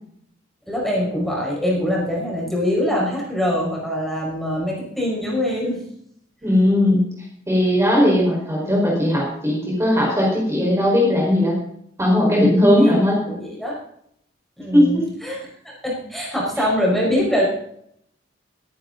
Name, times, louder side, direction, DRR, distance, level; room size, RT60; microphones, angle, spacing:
voice 1, 0.7-5.8 12.8-13.0 13.3-13.8 14.6-15.4 15.6-17.4, equal, ahead, -4 dB, 5.1 m, -23 dB
voice 2, 6.4-7.1 7.5-11.6 12.0-13.2 14.7-15.1 16.6-16.7, left 1 dB, 15° right, -3 dB, 4.8 m, -17 dB
22.0 x 10.5 x 4.0 m, 0.70 s
head